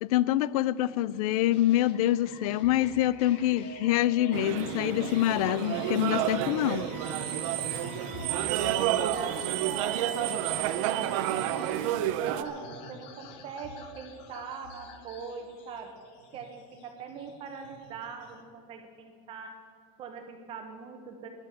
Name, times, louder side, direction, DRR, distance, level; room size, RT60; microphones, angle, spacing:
voice 1, 0.0-6.9, left 14 dB, 85° left, 0.5 m, -26 dB
sound 1, 1.5-18.4, left 3 dB, 55° left, 1.6 m, -47 dB
sound 2, 4.3-12.4, right 12 dB, 65° right, 0.7 m, -30 dB
sound 3, 6.9-12.0, left 2 dB, 5° left, 0.8 m, -48 dB
voice 2, 8.1-11.0 11.3-15.9 16.3-19.6 20.0-21.3, right 6 dB, 30° right, 1.0 m, -41 dB
12.5 x 10.5 x 7.1 m
cardioid pair, 175°, 18 cm